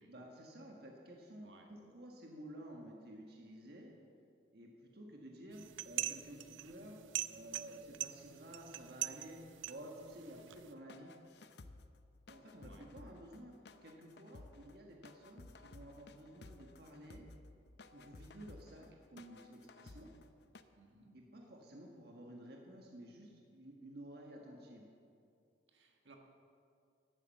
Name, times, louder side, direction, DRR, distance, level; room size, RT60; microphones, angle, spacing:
voice 1, 0.1-3.9 4.5-7.0 7.3-11.1 12.3-13.5 13.8-17.2 17.9-20.1 21.1-24.9, right 1 dB, 55° right, 0 dB, 1.5 m, -53 dB
sound 1, 5.5-10.7, right 14 dB, 90° right, 0.4 m, -43 dB
sound 2, 10.4-20.6, left 2 dB, 60° left, 0.6 m, -57 dB
voice 2, 20.7-21.2 25.7-26.2, right 2 dB, 75° right, 2 dB, 1.7 m, -61 dB
11.5 x 9.7 x 7.6 m, 2.4 s
head